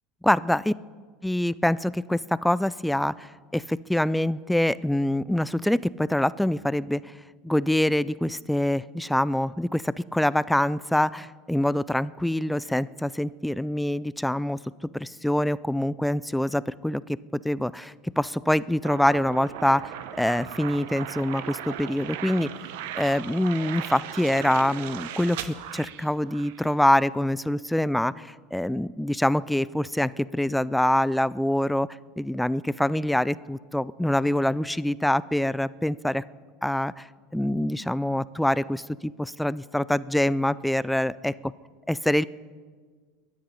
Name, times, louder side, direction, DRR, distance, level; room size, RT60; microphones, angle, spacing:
voice 1, 0.2-0.7 1.2-7.1 7.4-14.6 14.9-19.9 20.2-22.5 23.0-31.9 32.2-36.2 36.6-37.1 37.3-41.5 41.9-42.2, left 1 dB, 5° left, 19 dB, 0.4 m, -25 dB
sound 1, 18.8-26.6, right 10 dB, 75° right, 0.9 m, -37 dB
21.5 x 8.7 x 5.6 m, 1.5 s
hypercardioid pair, 90°, 0 cm